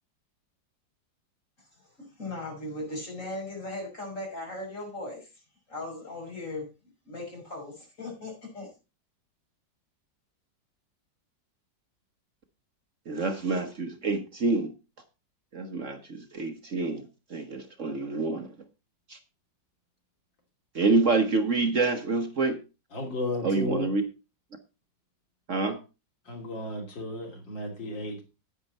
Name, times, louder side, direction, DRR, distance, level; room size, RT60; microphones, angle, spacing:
voice 1, 2.2-5.3 5.7-6.7 7.0-8.7, left 2 dB, 45° left, 6.1 m, -37 dB
voice 2, 13.1-14.7 15.5-17.0 17.3-18.6 19.1-19.2 20.7-22.6 23.4-24.0 25.5-25.8, right 3 dB, 45° right, 1.3 m, -27 dB
voice 3, 22.9-23.9 26.3-28.2, left 1 dB, 90° left, 3.7 m, -33 dB
9.9 x 9.3 x 4.2 m
omnidirectional pair, 1.9 m